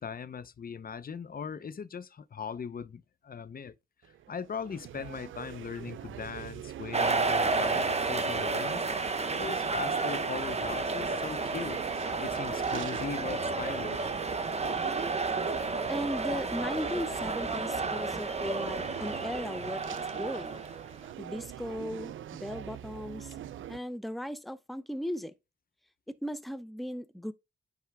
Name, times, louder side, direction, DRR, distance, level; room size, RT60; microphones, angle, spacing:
voice 1, 0.0-3.7 4.0-8.9 9.3-11.8 12.2-14.1, left 6 dB, 50° left, 0.7 m, -39 dB
sound 1, 4.0-23.8, right 11 dB, 85° right, 0.4 m, -43 dB
sound 2, 6.9-21.1, right 3 dB, 35° right, 1.0 m, -31 dB
voice 2, 15.9-19.8 20.2-20.6 21.2-23.3 23.7-25.3 26.1-27.3, equal, ahead, 0.6 m, -37 dB
9.4 x 3.4 x 3.5 m
cardioid pair, 65°, 20 cm